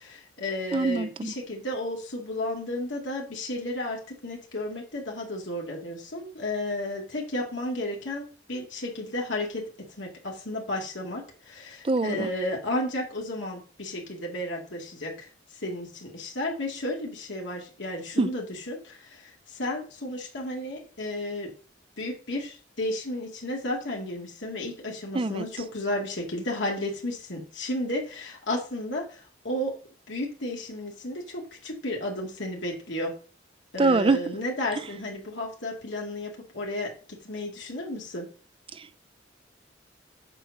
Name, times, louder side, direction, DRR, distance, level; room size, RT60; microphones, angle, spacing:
voice 1, 0.0-21.5 22.0-29.8 30.1-33.1 33.7-38.3, left 1 dB, 70° left, 2.3 m, -33 dB
voice 2, 0.7-1.3 11.8-12.3 18.2-18.3 25.1-25.4 33.8-34.2 38.7-39.0, right 3 dB, 30° right, 0.5 m, -24 dB
7.6 x 4.4 x 6.5 m
head